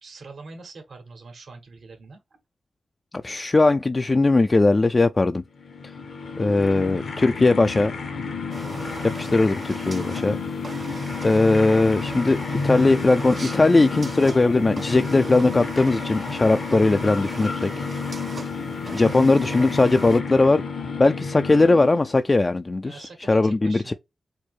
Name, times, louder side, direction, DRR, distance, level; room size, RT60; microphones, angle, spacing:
voice 1, 0.0-2.4 18.7-19.4 22.8-23.9, right 3 dB, 75° right, 1.4 m, -43 dB
voice 2, 3.2-5.4 6.4-7.9 9.1-10.4 11.2-12.4 12.6-17.7 18.9-20.6 21.0-23.9, left 2 dB, 40° left, 0.3 m, -19 dB
sound 1, 5.6-22.3, left 4 dB, 75° left, 0.9 m, -31 dB
sound 2, 8.5-20.2, right 3 dB, 55° right, 0.5 m, -39 dB
4.5 x 2.0 x 3.1 m
cardioid pair, 45°, 0 cm